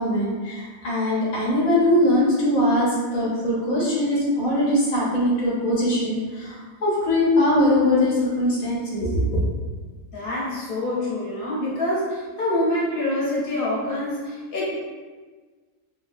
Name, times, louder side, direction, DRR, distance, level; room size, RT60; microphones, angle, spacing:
voice 1, 0.0-9.4, left 1 dB, 85° left, -7 dB, 1.3 m, -21 dB
voice 2, 10.1-14.7, left 1 dB, 45° left, -9 dB, 1.1 m, -26 dB
3.1 x 2.2 x 2.5 m, 1.4 s
omnidirectional pair, 1.4 m